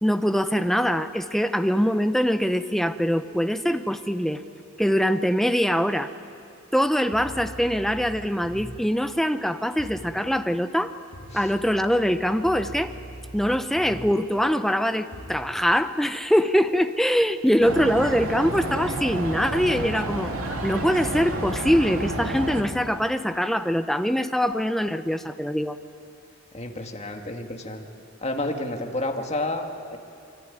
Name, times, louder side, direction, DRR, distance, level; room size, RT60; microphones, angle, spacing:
voice 1, 0.0-4.4 4.8-6.1 6.7-10.9 11.3-12.9 13.3-20.3 20.6-25.8, equal, ahead, 9 dB, 0.8 m, -23 dB
sound 1, 7.1-9.0 9.8-10.2 11.1-14.3 15.1-15.5, right 1 dB, 70° left, 2.8 m, -41 dB
sound 2, 17.6-22.6, right 1 dB, 70° right, 2.9 m, -30 dB
voice 2, 26.5-27.8 28.2-30.0, left 2 dB, 30° left, 3 dB, 2.0 m, -30 dB
25.0 x 24.0 x 9.9 m, 2.5 s
head